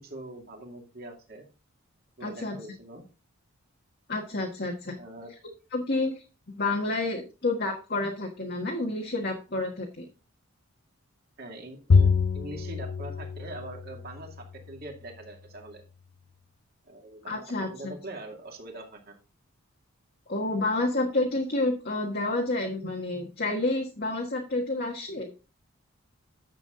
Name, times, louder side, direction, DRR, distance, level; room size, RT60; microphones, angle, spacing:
voice 1, 0.0-1.4 2.2-3.0 5.0-5.3 11.4-15.8 16.9-19.2, right 2 dB, 45° right, 2 dB, 2.3 m, -43 dB
voice 2, 2.2-2.6 4.1-5.0 5.7-6.2 6.5-10.1 17.3-17.9 20.3-25.3, left 2 dB, 45° left, 1 dB, 1.5 m, -29 dB
Bowed string instrument, 11.9-14.4, left 5 dB, 65° left, 0.5 m, -25 dB
10.5 x 7.4 x 3.8 m, 0.32 s
head